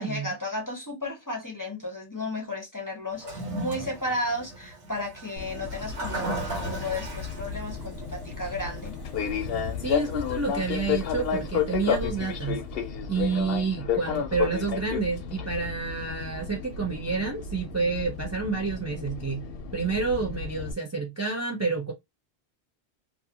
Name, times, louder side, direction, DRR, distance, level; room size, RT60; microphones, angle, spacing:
voice 1, 0.0-9.0, left 1 dB, 20° left, 0.6 m, -33 dB
Toilet flush, 3.1-12.4, right 1 dB, 85° right, 1.4 m, -38 dB
Fixed-wing aircraft airplane, 5.4-20.7, left 7 dB, 70° left, 0.7 m, -32 dB
voice 2, 9.8-12.6 13.1-19.5 19.7-21.9, right 4 dB, 25° right, 0.4 m, -29 dB
2.4 x 2.4 x 2.7 m
omnidirectional pair, 1.1 m